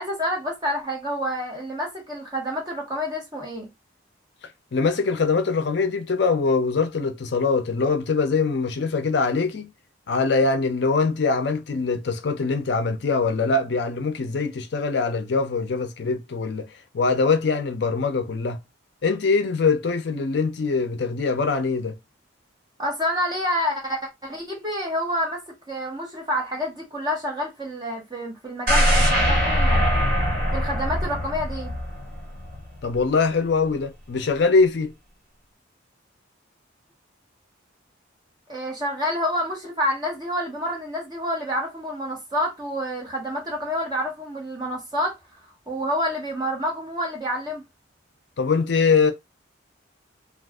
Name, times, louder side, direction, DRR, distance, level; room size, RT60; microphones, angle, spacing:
voice 1, 0.0-3.7 22.8-29.8 30.5-31.7 38.5-47.6, equal, 20° right, 1.1 m, -28 dB
voice 2, 4.7-9.7 10.1-18.6 19.0-21.9 32.8-34.9 48.4-49.1, left 4 dB, 55° left, 0.4 m, -23 dB
sound 1, 28.7-32.6 33.0-33.1, equal, 45° right, 1.4 m, -22 dB
2.5 x 2.3 x 3.4 m
head